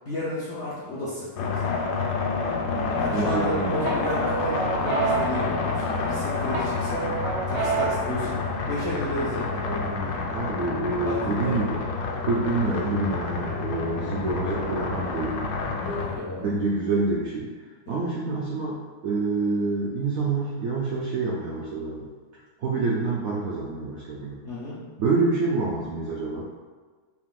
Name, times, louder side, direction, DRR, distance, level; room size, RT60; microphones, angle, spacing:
voice 1, 0.0-1.7 2.9-7.0 7.5-10.2 11.0-11.6 15.8-16.5 17.9-18.0 24.4-24.8, left 1 dB, 60° left, -9 dB, 0.7 m, -32 dB
sound 1, 1.4-16.2, left 4 dB, 90° left, 1.4 m, -28 dB
sound 2, 2.9-3.4 3.9-6.1 6.5-8.1, right 5 dB, 90° right, 1.8 m, -29 dB
voice 2, 3.1-3.9 10.3-11.8 12.2-15.4 16.4-17.5 17.9-22.1 22.6-24.4 25.0-26.5, right 3 dB, 75° right, -5 dB, 0.7 m, -27 dB
4.5 x 2.4 x 3.7 m, 1.4 s
omnidirectional pair, 2.2 m